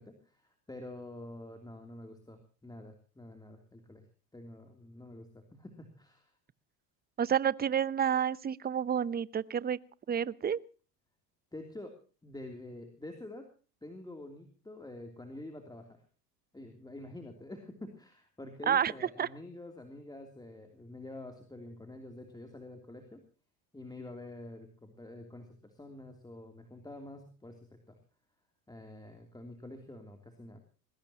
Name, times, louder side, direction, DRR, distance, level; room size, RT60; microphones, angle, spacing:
voice 1, 0.0-4.0 4.3-6.3 11.5-12.0 12.2-13.5 13.8-16.0 16.5-23.2 23.7-28.0 28.7-30.6, left 1 dB, 10° left, 4 dB, 3.0 m, -47 dB
voice 2, 7.2-9.8 10.1-10.6 18.7-18.9 19.2-19.3, right 8 dB, 20° right, 19 dB, 0.7 m, -29 dB
21.5 x 20.0 x 2.9 m, 0.37 s
supercardioid pair, 110°, 48 cm